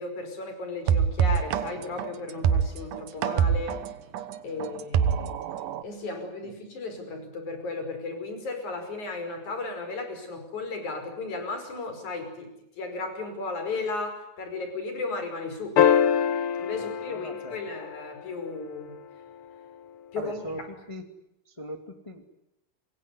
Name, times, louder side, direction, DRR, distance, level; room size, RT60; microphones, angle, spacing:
voice 1, 0.0-3.8 4.4-5.4 5.8-12.5 12.8-15.8 16.6-18.9 20.1-20.4, left 3 dB, 55° left, 7 dB, 6.6 m, -35 dB
sound 1, 0.9-5.8, right 8 dB, 70° right, 2.6 m, -25 dB
sound 2, 15.8-18.3 20.5-20.6, left 9 dB, 70° left, 1.3 m, -24 dB
voice 2, 16.7-17.6 20.1-21.1 21.4-22.3, equal, 10° left, 5 dB, 1.8 m, -40 dB
26.0 x 22.0 x 9.6 m, 0.85 s
omnidirectional pair, 4.2 m